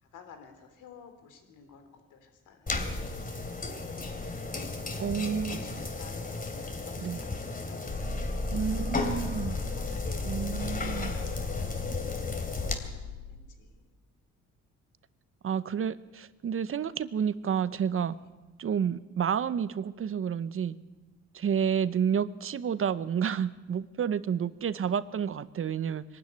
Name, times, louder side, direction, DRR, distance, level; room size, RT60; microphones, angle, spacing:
voice 1, 0.0-3.8 4.4-4.7 5.1-6.2 6.8-9.0 9.6-13.9 18.1-18.3, left 6 dB, 90° left, 7 dB, 3.4 m, -53 dB
sound 1, 2.7-12.7, left 3 dB, 30° left, 2.9 m, -35 dB
voice 2, 5.0-5.6 7.0-7.2 8.5-9.6 10.3-11.1 15.4-18.2 18.6-20.8 21.3-26.0, right 7 dB, 45° right, 15 dB, 0.8 m, -30 dB
sound 2, 7.9-13.4, left 3 dB, 70° left, 6.3 m, -36 dB
22.0 x 12.5 x 9.6 m, 1.2 s
cardioid pair, 90°, 30 cm